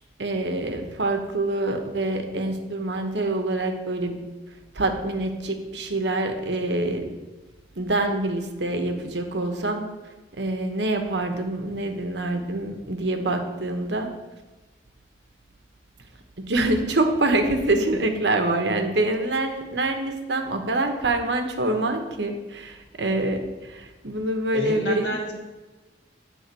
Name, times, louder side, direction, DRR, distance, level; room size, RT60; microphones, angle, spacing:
voice 1, 0.2-4.2 4.7-7.1 7.7-9.9 10.4-14.1 16.4-25.2, right 2 dB, 80° right, 5 dB, 1.0 m, -25 dB
voice 2, 24.5-25.3, equal, 80° left, 0 dB, 1.8 m, -29 dB
9.4 x 3.5 x 6.8 m, 1.2 s
head